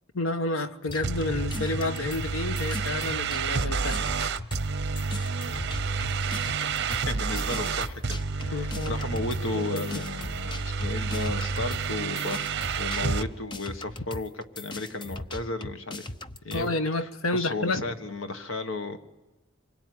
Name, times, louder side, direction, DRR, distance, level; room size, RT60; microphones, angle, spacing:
voice 1, 0.1-4.3 8.5-10.0 16.5-17.8, left 2 dB, 85° left, 10 dB, 1.3 m, -30 dB
sound 1, 0.9-4.7 5.0-16.7, left 2 dB, 20° left, 0.8 m, -39 dB
sound 2, 1.0-13.3, right 4 dB, 55° right, 0.8 m, -30 dB
voice 2, 6.9-16.1 16.4-19.0, left 2 dB, 70° left, 9 dB, 1.6 m, -34 dB
25.5 x 21.5 x 9.6 m, 1.1 s
head